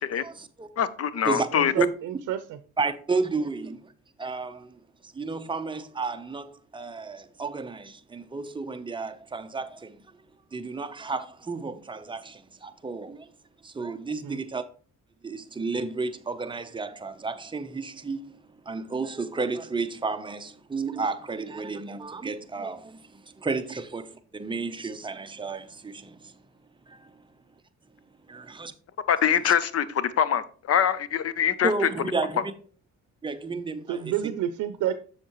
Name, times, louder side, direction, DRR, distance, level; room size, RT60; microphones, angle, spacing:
voice 1, 0.2-0.7 1.2-1.5 1.8-1.9 2.8-3.9 4.2-10.0 10.5-13.3 13.6-14.6 15.2-18.4 18.6-26.4 26.9-27.2 28.3-28.7 29.4-29.5 31.6-32.5 33.2-34.1, right 4 dB, 15° right, 0.7 m, -32 dB
voice 2, 0.8-1.7 29.1-31.7, left 8 dB, 50° left, 0.7 m, -24 dB
voice 3, 1.5-2.6 14.2-14.4 33.9-34.9, right 10 dB, 80° right, 0.6 m, -29 dB
7.3 x 6.6 x 3.0 m
cardioid pair, 90°, 30 cm